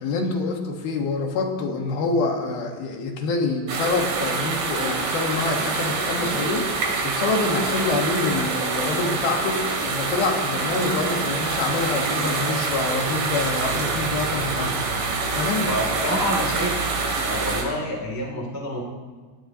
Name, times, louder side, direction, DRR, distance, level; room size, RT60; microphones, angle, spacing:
voice 1, 0.0-14.8 15.3-15.7, left 3 dB, 65° left, 2 dB, 3.0 m, -26 dB
sound 1, 3.7-17.6, right 4 dB, 80° right, 4.7 m, -26 dB
voice 2, 15.7-16.8 17.2-18.8, equal, 20° right, -1 dB, 0.4 m, -28 dB
27.5 x 17.0 x 2.9 m, 1.4 s
omnidirectional pair, 5.1 m